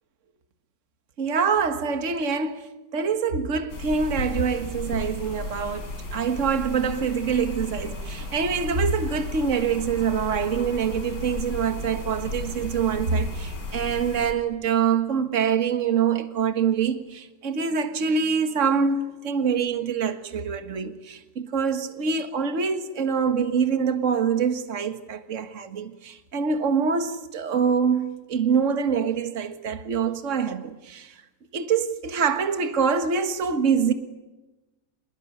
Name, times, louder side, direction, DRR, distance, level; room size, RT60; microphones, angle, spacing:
voice 1, 1.2-31.1 31.5-33.9, right 6 dB, 45° right, 1.8 m, -25 dB
sound 1, 3.7-14.3, left 2 dB, 75° left, 4.8 m, -34 dB
26.5 x 20.5 x 9.5 m
omnidirectional pair, 1.9 m